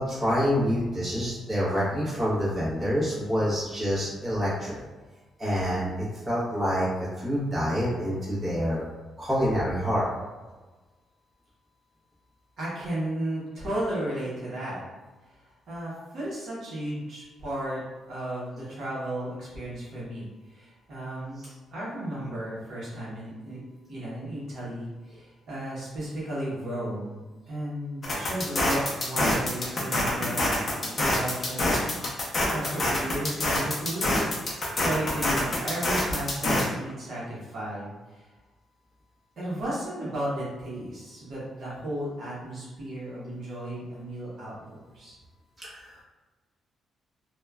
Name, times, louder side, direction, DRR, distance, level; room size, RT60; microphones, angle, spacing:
voice 1, 0.0-4.8 5.4-5.9 6.3-8.8 9.2-10.0 45.6-46.0, equal, 20° right, -10 dB, 0.9 m, -27 dB
voice 2, 12.6-14.8 15.7-17.8 18.1-21.4 21.7-23.6 23.9-31.8 32.5-38.3 39.4-45.2, right 1 dB, 50° right, -8 dB, 0.8 m, -34 dB
sound 1, 28.0-36.6, left 1 dB, 30° left, 0.5 m, -26 dB
2.9 x 2.1 x 2.3 m, 1.2 s
cardioid pair, 170°, 0 cm